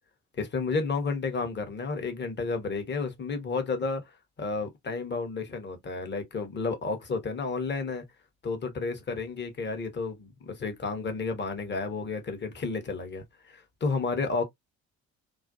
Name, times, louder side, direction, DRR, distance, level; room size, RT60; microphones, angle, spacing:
voice 1, 0.4-4.0 4.4-8.0 8.4-14.4, left 4 dB, 25° left, 0.8 m, -31 dB
2.4 x 2.2 x 2.4 m
figure-of-eight pair, 50°, 42 cm